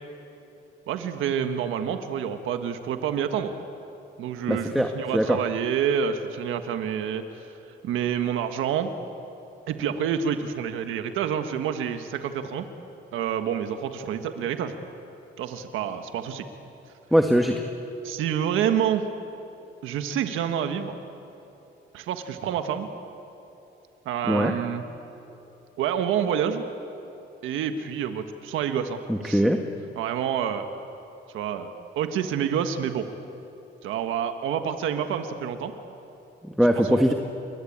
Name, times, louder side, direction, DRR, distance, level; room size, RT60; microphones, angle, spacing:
voice 1, 0.9-3.5 4.2-7.2 7.8-8.9 9.7-12.7 13.1-14.7 15.4-16.4 18.0-19.0 19.8-20.9 21.9-22.9 24.0-24.8 25.8-26.6 27.4-29.4 30.0-30.7 31.3-31.7 31.9-33.0 33.8-35.7 36.9-37.1, right 8 dB, 90° right, 7 dB, 1.5 m, -28 dB
voice 2, 4.5-5.4 17.1-17.6 24.2-24.5 29.1-29.6 36.4-37.1, equal, ahead, 4 dB, 1.7 m, -21 dB
28.5 x 23.0 x 8.8 m, 2.9 s
cardioid pair, 90°, 20 cm